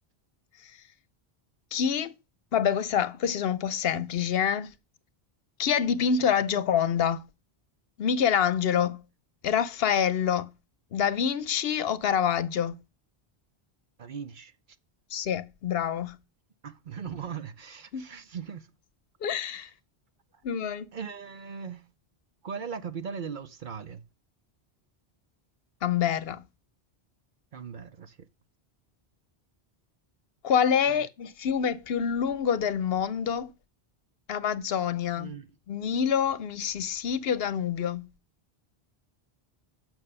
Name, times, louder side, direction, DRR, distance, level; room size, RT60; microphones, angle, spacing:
voice 1, 1.7-2.1 2.5-4.7 5.6-7.2 8.0-9.0 9.4-10.5 10.9-12.7 15.1-16.2 17.9-18.1 19.2-19.7 20.4-20.9 25.8-26.4 30.4-33.5 34.3-35.3 35.7-38.1, left 8 dB, 70° left, 0.9 m, -26 dB
voice 2, 14.0-14.5 16.6-18.7 19.5-19.7 20.9-21.9 22.4-24.0 27.5-28.3 30.9-31.1 35.2-35.5, right 6 dB, 55° right, 0.8 m, -39 dB
8.8 x 6.2 x 5.4 m
omnidirectional pair, 1.1 m